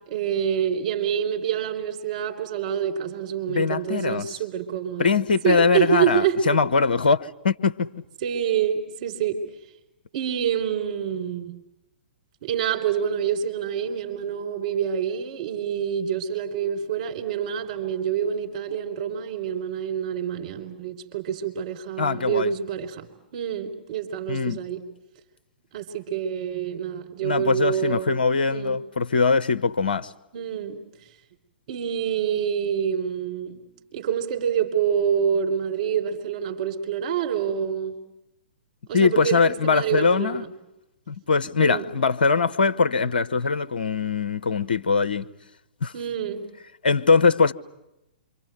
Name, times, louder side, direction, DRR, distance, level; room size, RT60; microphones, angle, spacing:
voice 1, 0.0-5.2 5.4-6.6 8.2-9.5 10.1-11.5 12.4-24.8 25.7-28.2 28.5-28.8 30.3-30.8 31.7-33.6 33.9-37.9 38.9-40.5 41.6-41.8 45.9-46.4, right 8 dB, 45° right, 4.2 m, -27 dB
voice 2, 3.5-4.3 5.0-7.9 22.0-22.5 24.3-24.6 27.2-30.1 38.9-40.4 41.1-45.3 45.8-45.9 46.8-47.5, left 4 dB, 65° left, 0.9 m, -22 dB
27.0 x 25.0 x 7.9 m
figure-of-eight pair, 115°, 5 cm